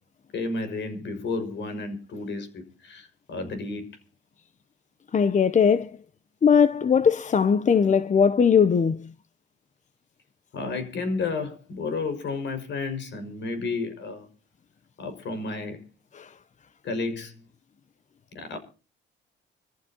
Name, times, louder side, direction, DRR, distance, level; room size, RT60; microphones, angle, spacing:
voice 1, 0.3-3.9 10.5-14.3 15.0-15.8 16.8-17.4 18.3-18.6, left 3 dB, 65° left, 5.7 m, -32 dB
voice 2, 5.1-5.9 6.4-9.1 16.1-16.3, left 6 dB, 40° left, 0.8 m, -20 dB
25.5 x 14.5 x 2.9 m
cardioid pair, 90°, 20 cm